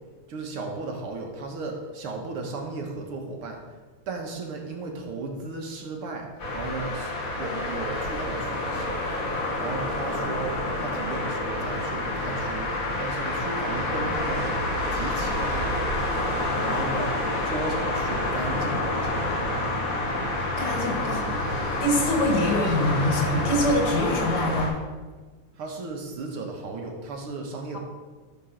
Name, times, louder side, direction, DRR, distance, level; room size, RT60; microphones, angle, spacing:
voice 1, 0.3-3.6 4.1-6.3 6.5-9.0 9.3-12.7 13.0-14.6 14.9-15.8 16.6-17.1 17.4-19.3 25.6-27.8, right 3 dB, 80° right, 2 dB, 2.4 m, -35 dB
sound 1, 6.4-24.7, left 2 dB, 40° left, 2.3 m, -28 dB
voice 2, 20.6-21.5 21.8-24.8 27.7-27.8, left 1 dB, 80° left, 1 dB, 2.9 m, -25 dB
12.5 x 4.7 x 6.4 m, 1.3 s
omnidirectional pair, 2.4 m